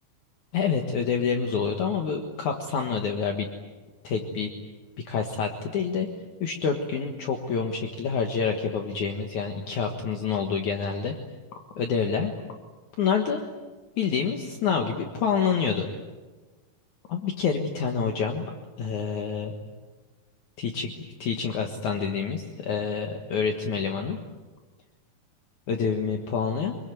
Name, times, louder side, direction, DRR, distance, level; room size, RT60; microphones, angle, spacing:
voice 1, 0.5-3.5 4.0-4.5 5.0-6.1 6.4-11.1 11.8-12.3 13.0-13.4 14.0-15.9 17.1-18.4 18.8-19.5 20.6-24.2 25.7-26.7, left 6 dB, 60° left, 3 dB, 2.7 m, -27 dB
25.0 x 22.5 x 9.5 m, 1.3 s
omnidirectional pair, 4.1 m